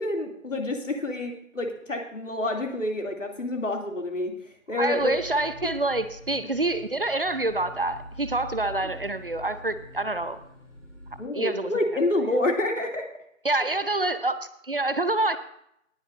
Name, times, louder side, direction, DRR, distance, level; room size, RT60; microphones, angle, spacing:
voice 1, 0.0-4.3 4.7-5.1 11.2-13.1, left 2 dB, 65° left, 2 dB, 2.8 m, -28 dB
voice 2, 4.8-10.4 11.3-11.7 13.4-15.4, right 2 dB, 45° right, 12 dB, 0.7 m, -27 dB
sound 1, 4.9-11.2, equal, 20° left, 4.7 m, -44 dB
19.0 x 9.8 x 2.6 m, 0.72 s
figure-of-eight pair, 165°, 40 cm